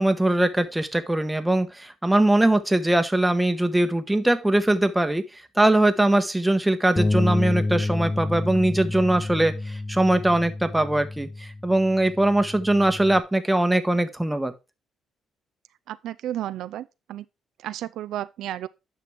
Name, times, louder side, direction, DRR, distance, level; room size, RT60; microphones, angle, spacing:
voice 1, 0.0-5.2 5.6-14.5, right 1 dB, 10° right, 1.2 m, -21 dB
Bass guitar, 7.0-13.2, left 2 dB, 20° left, 0.4 m, -29 dB
voice 2, 15.9-17.2 17.6-18.7, right 12 dB, 80° right, 0.4 m, -32 dB
9.3 x 6.1 x 3.4 m
cardioid pair, 90°, 0 cm